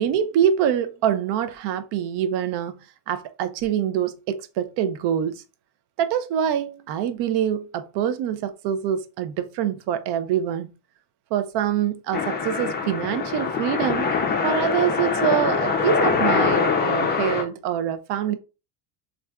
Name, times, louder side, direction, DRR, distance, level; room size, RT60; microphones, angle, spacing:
voice 1, 0.0-2.8 3.1-5.4 6.0-10.7 11.3-14.1 14.4-18.3, right 9 dB, 55° right, 0.6 m, -25 dB
sound 1, 12.1-17.4, left 5 dB, 25° left, 0.4 m, -23 dB
3.2 x 2.5 x 2.3 m
supercardioid pair, 100°, 48 cm